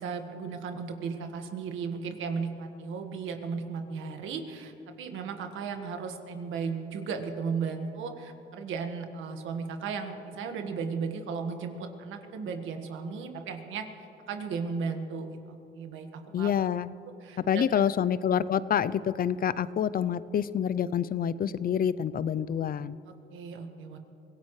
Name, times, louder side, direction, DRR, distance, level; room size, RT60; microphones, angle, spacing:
voice 1, 0.0-13.8 14.3-16.5 17.2-17.9 23.1-24.0, right 5 dB, 80° right, 5 dB, 1.6 m, -35 dB
voice 2, 16.3-17.0 17.4-23.0, left 9 dB, 45° left, 17 dB, 0.5 m, -27 dB
25.0 x 17.0 x 3.2 m, 2.9 s
cardioid pair, 90°, 20 cm